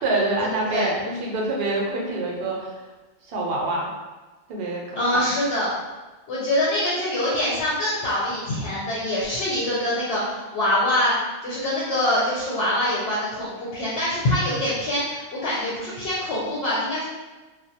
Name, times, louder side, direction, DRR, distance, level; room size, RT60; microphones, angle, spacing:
voice 1, 0.0-2.7 3.3-3.9 4.5-5.2, right 2 dB, 65° right, -2 dB, 0.7 m, -26 dB
voice 2, 4.9-5.7 6.3-11.2 11.4-17.0, left 1 dB, 70° left, -7 dB, 0.8 m, -24 dB
2.2 x 2.1 x 2.7 m, 1.2 s
omnidirectional pair, 1.2 m